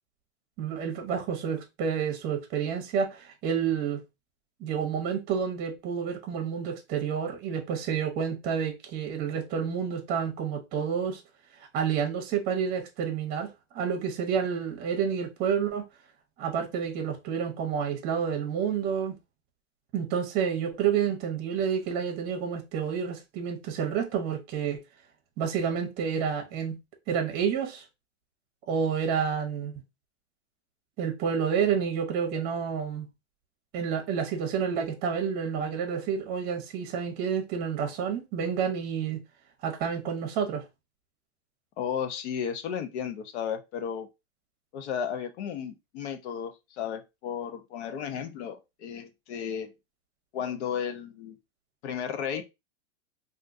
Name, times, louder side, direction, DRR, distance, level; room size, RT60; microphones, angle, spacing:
voice 1, 0.6-4.0 4.6-11.2 11.7-15.8 16.4-19.1 19.9-24.8 25.4-26.8 27.1-27.8 28.7-29.8 31.0-33.1 33.7-39.2 39.6-40.6, right 7 dB, 25° right, 0.8 m, -29 dB
voice 2, 41.8-44.1 44.7-49.7 50.3-51.4 51.8-52.4, left 8 dB, 60° left, 0.8 m, -34 dB
3.6 x 2.6 x 2.6 m
supercardioid pair, 155°, 38 cm